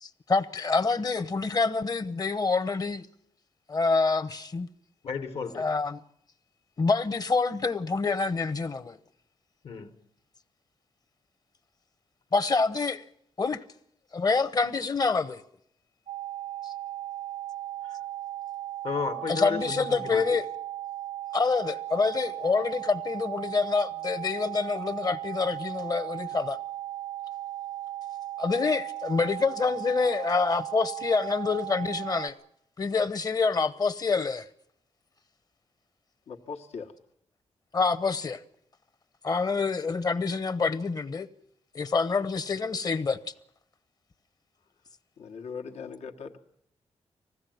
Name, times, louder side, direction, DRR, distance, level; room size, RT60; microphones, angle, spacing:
voice 1, 0.0-3.1 3.7-4.7 5.6-6.0 6.8-9.0 12.3-13.0 13.4-13.6 14.1-15.4 16.6-16.7 19.3-20.5 21.3-26.6 28.4-32.4 32.8-34.5 37.7-38.4 39.2-41.3 41.7-43.3, left 4 dB, 35° left, 0.9 m, -27 dB
voice 2, 5.0-5.7 9.6-10.0 17.8-18.0 18.8-20.2, left 5 dB, 70° left, 1.5 m, -33 dB
sound 1, 16.1-32.3, right 14 dB, 70° right, 0.7 m, -37 dB
voice 3, 36.3-36.9 45.2-46.4, left 5 dB, 90° left, 1.4 m, -40 dB
20.0 x 16.0 x 9.2 m
wide cardioid pair, 120°, 11 cm